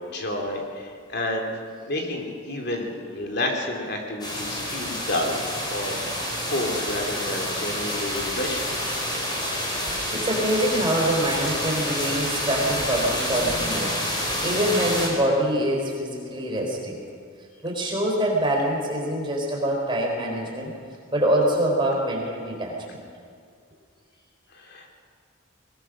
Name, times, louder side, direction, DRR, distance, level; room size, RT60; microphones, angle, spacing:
voice 1, 0.0-1.5 1.9-8.7 24.5-25.0, left 1 dB, 50° left, 1 dB, 3.2 m, -30 dB
sound 1, 4.2-15.1, left 1 dB, 20° left, 4.5 m, -28 dB
voice 2, 10.1-14.0 14.4-17.0 17.6-20.7 21.1-23.0, right 1 dB, 25° right, -1 dB, 4.1 m, -25 dB
21.0 x 21.0 x 6.3 m, 2.2 s
head